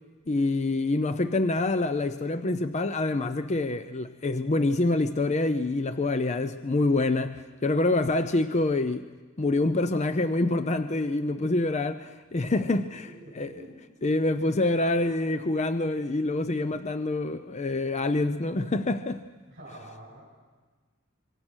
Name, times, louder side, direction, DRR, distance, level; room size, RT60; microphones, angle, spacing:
voice 1, 0.3-9.0 9.4-13.6 14.0-19.2, left 2 dB, 30° left, 0.6 m, -26 dB
voice 2, 12.6-13.7 19.5-20.3, right 1 dB, 45° right, 7.0 m, -47 dB
26.5 x 24.0 x 6.3 m
head